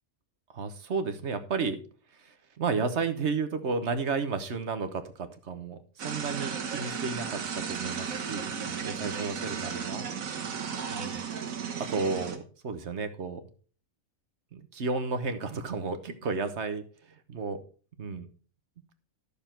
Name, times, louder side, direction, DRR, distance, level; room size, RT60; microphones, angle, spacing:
voice 1, 0.5-1.8 2.2-5.8 6.0-10.1 10.9-11.2 11.8-13.4 14.5-16.8 17.3-17.6 18.0-18.3, right 4 dB, 55° right, 9 dB, 1.3 m, -32 dB
sound 1, 6.0-12.4, right 6 dB, 75° right, 1.6 m, -35 dB
11.5 x 6.8 x 4.4 m, 0.40 s
omnidirectional pair, 1.4 m